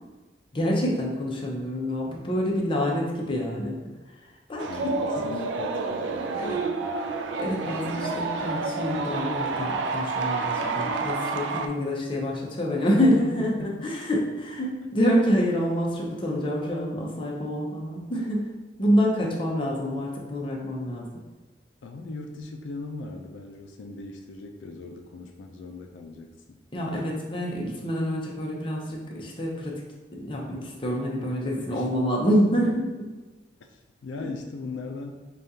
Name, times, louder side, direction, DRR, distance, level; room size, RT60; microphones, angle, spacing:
voice 1, 0.5-3.8 4.5-4.7 4.9-5.2 6.4-6.6 7.4-18.5 18.8-21.1 26.7-29.8 30.1-33.1, equal, 30° left, -2 dB, 0.6 m, -27 dB
voice 2, 4.6-7.2 13.0-13.9 21.8-26.6 31.7-31.9 33.7-35.1, left 3 dB, 80° left, 3 dB, 0.4 m, -39 dB
sound 1, 4.6-11.7, right 4 dB, 85° right, 0.4 m, -29 dB
5.0 x 2.3 x 2.7 m, 1.2 s
head